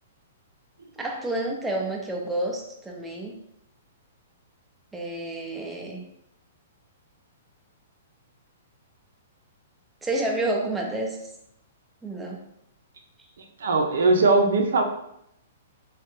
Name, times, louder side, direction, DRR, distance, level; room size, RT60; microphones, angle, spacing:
voice 1, 1.0-3.4 4.9-6.0 10.0-11.2 12.0-12.4, right 2 dB, 5° right, 0 dB, 0.3 m, -29 dB
voice 2, 13.4-14.8, right 3 dB, 80° right, 4 dB, 0.6 m, -20 dB
3.2 x 2.3 x 2.9 m, 0.77 s
hypercardioid pair, 165°, 0 cm